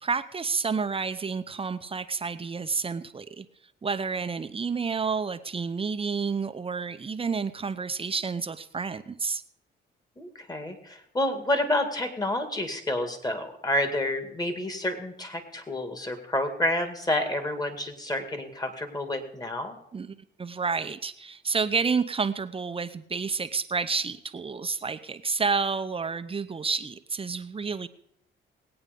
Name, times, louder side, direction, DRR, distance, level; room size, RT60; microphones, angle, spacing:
voice 1, 0.0-3.5 3.8-9.4 19.9-27.9, right 5 dB, 30° right, 11 dB, 0.7 m, -30 dB
voice 2, 10.2-19.8, left 1 dB, 20° left, 7 dB, 2.2 m, -29 dB
19.0 x 8.8 x 5.2 m, 0.75 s
cardioid pair, 90°, 20 cm